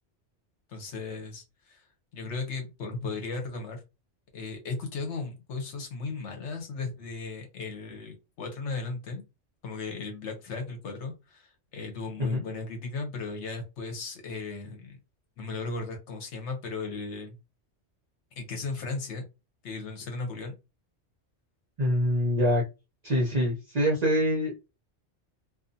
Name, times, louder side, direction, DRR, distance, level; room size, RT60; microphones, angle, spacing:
voice 1, 0.7-1.9 2.1-3.8 4.3-9.2 9.6-15.0 15.4-17.4 18.3-19.2 19.6-20.5, left 3 dB, 75° left, 4 dB, 1.1 m, -36 dB
voice 2, 21.8-22.6 23.0-24.7, equal, 45° right, -3 dB, 0.6 m, -25 dB
2.6 x 2.3 x 2.6 m, 0.27 s
omnidirectional pair, 1.2 m